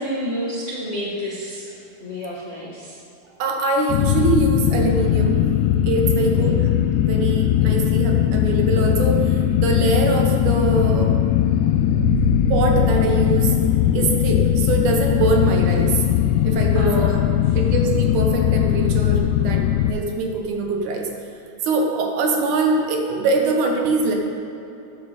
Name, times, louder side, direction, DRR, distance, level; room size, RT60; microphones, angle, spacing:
voice 1, 0.0-1.7 2.0-3.0 6.2-6.6 16.7-17.3, equal, 35° left, -6 dB, 1.1 m, -29 dB
voice 2, 3.4-5.5 5.8-6.7 7.0-11.1 11.6-11.7 12.5-13.5 13.9-16.0 16.4-17.2 17.6-21.1 21.6-24.1, right 3 dB, 80° right, 2 dB, 2.6 m, -23 dB
sound 1, 3.9-19.9, left 11 dB, 90° left, 2.1 m, -19 dB
sound 2, 11.6-14.4, right 1 dB, 60° right, 3.0 m, -28 dB
9.2 x 7.7 x 6.6 m, 2.9 s
omnidirectional pair, 3.5 m